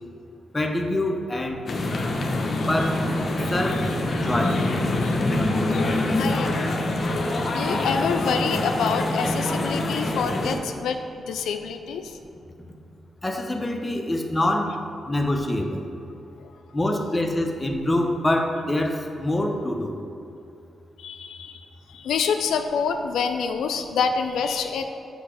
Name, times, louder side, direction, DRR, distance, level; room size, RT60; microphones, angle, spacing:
voice 1, 0.5-1.6 2.7-3.0 3.5-3.9 4.2-4.6 13.2-14.7 15.1-15.8 16.7-19.9, left 1 dB, 20° left, 3 dB, 0.7 m, -25 dB
sound 1, 1.7-10.6, left 1 dB, 50° left, 0.7 m, -25 dB
voice 2, 2.2-2.9 3.4-3.9 4.4-4.6 5.0-5.2 5.7-6.8 7.5-12.2 16.4-16.5 21.0-24.8, left 6 dB, 90° left, 6 dB, 0.3 m, -28 dB
8.0 x 2.9 x 4.8 m, 2.7 s
cardioid pair, 75°, 0 cm